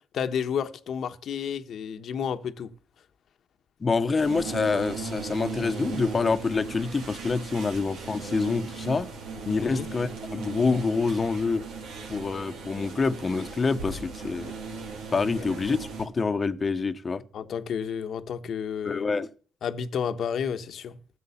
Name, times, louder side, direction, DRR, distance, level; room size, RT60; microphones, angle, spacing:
voice 1, 0.1-2.7 9.6-9.9 15.4-15.5 17.3-19.0 19.6-21.0, left 7 dB, 65° left, 1.1 m, -31 dB
voice 2, 3.8-9.1 9.5-11.6 12.1-14.5 15.1-17.2 18.8-19.3, left 4 dB, 35° left, 1.0 m, -26 dB
sound 1, 4.2-16.1, right 4 dB, 85° right, 2.7 m, -37 dB
14.5 x 7.5 x 7.1 m
cardioid pair, 90°, 0 cm